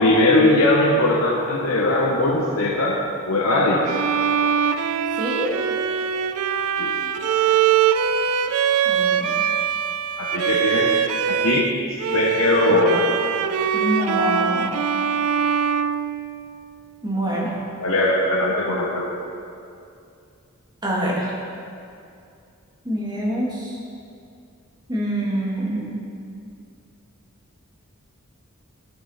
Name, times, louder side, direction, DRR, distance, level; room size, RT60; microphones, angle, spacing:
voice 1, 0.0-2.9 3.3-3.8 6.8-6.9 10.2-10.9 11.3-11.7 12.1-13.1 17.8-19.1, left 2 dB, 70° left, -3 dB, 0.9 m, -19 dB
Bowed string instrument, 3.8-11.7 12.0-16.8, right 8 dB, 85° right, 0.4 m, -22 dB
voice 2, 5.1-5.7 8.8-9.4 13.7-14.8 17.0-17.5 20.8-21.3 22.8-23.8 24.9-26.0, equal, 20° right, -4 dB, 1.6 m, -25 dB
9.8 x 8.3 x 4.1 m, 2.5 s
head